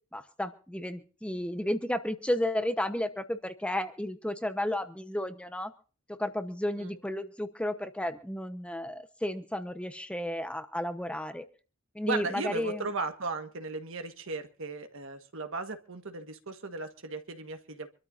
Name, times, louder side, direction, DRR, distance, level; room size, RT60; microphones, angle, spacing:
voice 1, 0.1-5.7 6.1-11.5 11.9-12.9, left 1 dB, 5° left, 8 dB, 1.0 m, -33 dB
voice 2, 12.1-17.9, right 3 dB, 70° right, 7 dB, 1.6 m, -36 dB
25.5 x 13.0 x 2.7 m, 0.37 s
head